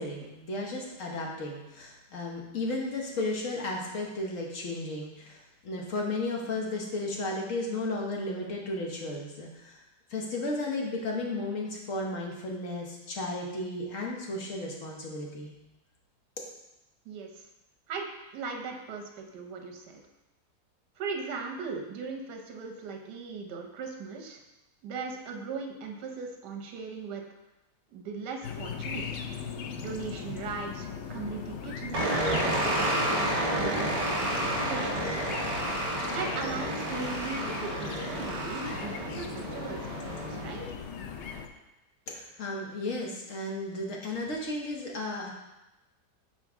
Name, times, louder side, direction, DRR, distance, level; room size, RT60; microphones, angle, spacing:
voice 1, 0.0-9.8 10.1-15.5 42.1-45.3, left 2 dB, 55° left, -1 dB, 1.3 m, -34 dB
voice 2, 17.0-17.5 17.9-18.0 18.3-20.0 21.0-24.4 24.8-27.2 27.9-29.1 29.8-35.2 36.1-40.8, right 4 dB, 80° right, 3 dB, 1.4 m, -38 dB
sound 1, 28.4-41.5, left 6 dB, 80° left, 0.6 m, -38 dB
sound 2, 31.9-40.6, right 1 dB, 60° right, 1.8 m, -31 dB
6.9 x 4.6 x 3.5 m, 0.98 s
omnidirectional pair, 1.8 m